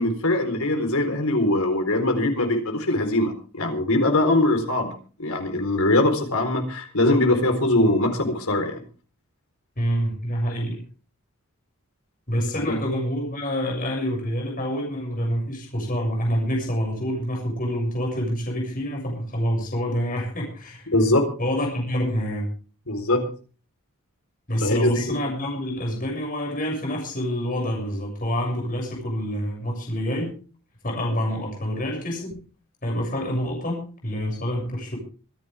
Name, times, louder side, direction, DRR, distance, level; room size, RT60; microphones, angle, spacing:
voice 1, 0.0-4.9 5.2-8.8 12.6-12.8 20.9-21.3 22.9-23.3 24.6-25.1, left 1 dB, 75° left, 5 dB, 4.2 m, -22 dB
voice 2, 9.8-10.8 12.3-20.9 21.4-22.5 24.5-30.3 30.8-32.4 32.8-35.0, equal, 40° left, 0 dB, 7.0 m, -27 dB
25.5 x 11.0 x 3.5 m, 0.38 s
head